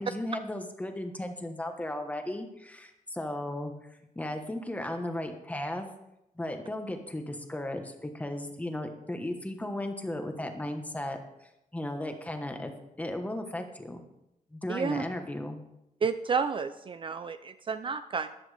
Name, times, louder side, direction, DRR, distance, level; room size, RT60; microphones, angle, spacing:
voice 1, 0.0-3.7 4.1-5.9 6.3-11.2 11.7-12.7 13.0-14.1 14.5-15.6, left 1 dB, 10° left, 5 dB, 1.2 m, -35 dB
voice 2, 14.7-15.0 16.0-18.3, right 5 dB, 40° right, 11 dB, 0.4 m, -31 dB
14.0 x 10.5 x 3.4 m, 0.88 s
wide cardioid pair, 150°, 14 cm